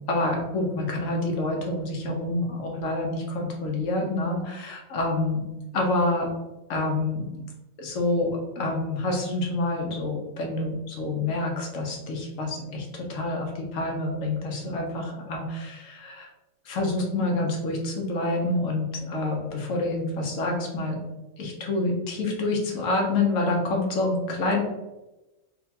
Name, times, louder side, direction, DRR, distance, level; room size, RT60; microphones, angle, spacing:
voice 1, 0.1-5.4 5.7-6.3 6.7-7.4 7.8-16.3 16.6-21.0 21.4-24.6, left 2 dB, 75° left, 0 dB, 1.2 m, -27 dB
4.1 x 2.2 x 2.8 m, 1.0 s
omnidirectional pair, 1.4 m